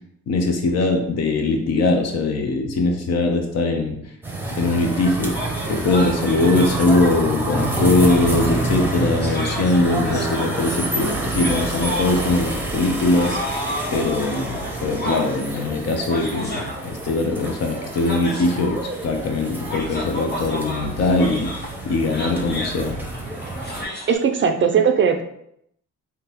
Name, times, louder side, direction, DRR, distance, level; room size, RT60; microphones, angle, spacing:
voice 1, 0.3-4.0 4.5-5.3 5.7-13.4 13.9-16.7 17.0-23.0, left 2 dB, 60° left, 4 dB, 0.7 m, -21 dB
sound 1, 4.2-23.8, right 2 dB, 5° right, 0.7 m, -28 dB
sound 2, 5.3-24.2, left 1 dB, 35° left, 1.0 m, -33 dB
voice 2, 24.1-25.2, right 6 dB, 40° right, 7 dB, 0.4 m, -18 dB
3.7 x 2.8 x 2.9 m, 0.75 s
cardioid pair, 90°, 30 cm